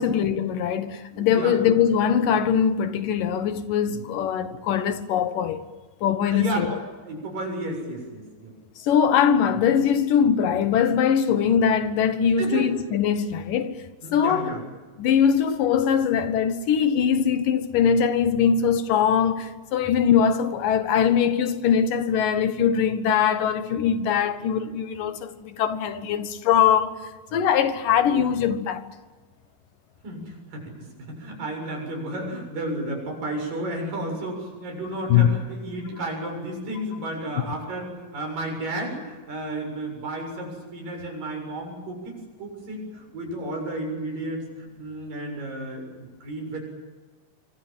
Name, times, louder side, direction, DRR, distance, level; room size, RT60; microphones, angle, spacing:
voice 1, 0.0-5.6 6.0-6.7 8.8-13.8 14.1-14.5 15.0-26.9 27.3-28.9 35.1-35.3, left 8 dB, 80° left, 3.1 m, -22 dB
voice 2, 1.1-1.6 3.8-4.0 6.3-8.5 12.4-12.7 14.0-14.6 27.3-27.4 30.0-46.6, right 1 dB, 85° right, 9.0 m, -33 dB
26.5 x 24.0 x 7.5 m
omnidirectional pair, 3.8 m